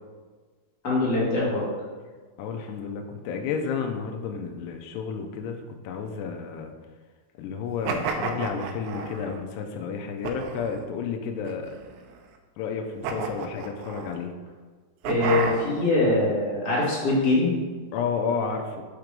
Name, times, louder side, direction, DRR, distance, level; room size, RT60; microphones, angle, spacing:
voice 1, 0.8-1.6 15.0-17.5, left 2 dB, 35° left, -7 dB, 1.7 m, -23 dB
voice 2, 2.4-5.6 5.8-6.7 7.4-11.8 12.6-14.3 17.9-18.8, left 6 dB, 80° left, 3 dB, 2.6 m, -31 dB
sound 1, 7.8-9.4 10.2-10.8 11.4-12.2 13.0-14.2 15.0-15.9, right 5 dB, 90° right, 2.9 m, -31 dB
6.6 x 4.6 x 5.1 m, 1.4 s
omnidirectional pair, 4.8 m